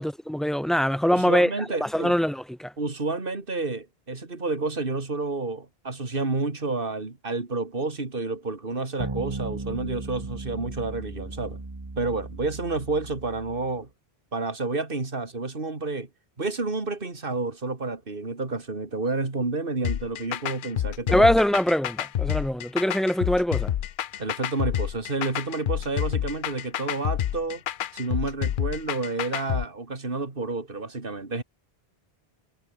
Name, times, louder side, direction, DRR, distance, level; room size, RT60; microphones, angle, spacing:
voice 1, 0.0-1.5 1.8-2.7 21.1-23.7, equal, ahead, 1.2 m, -23 dB
voice 2, 1.1-2.1 2.8-11.6 11.9-13.9 14.3-16.1 16.4-21.3 24.2-27.6 27.9-31.4, right 3 dB, 60° right, 2.9 m, -30 dB
sound 1, 9.0-13.8, right 3 dB, 25° right, 1.3 m, -36 dB
sound 2, 19.8-29.6, left 11 dB, 60° left, 0.7 m, -28 dB
omnidirectional pair, 1.0 m